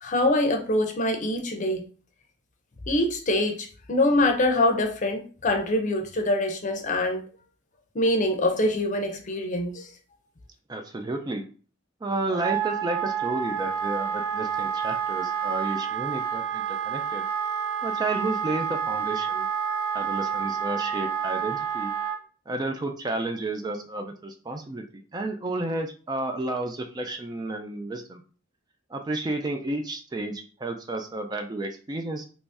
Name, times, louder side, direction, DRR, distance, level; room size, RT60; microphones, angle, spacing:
voice 1, 0.0-1.9 2.9-7.2 7.9-9.9, left 1 dB, 40° left, 4 dB, 0.6 m, -24 dB
voice 2, 10.7-11.4 12.0-17.3 17.8-19.5 19.9-21.9 22.5-28.2 28.9-32.3, right 2 dB, 20° right, 5 dB, 0.3 m, -32 dB
Wind instrument woodwind instrument, 12.3-22.2, right 7 dB, 90° right, 0.6 m, -29 dB
3.0 x 2.7 x 3.4 m, 0.38 s
head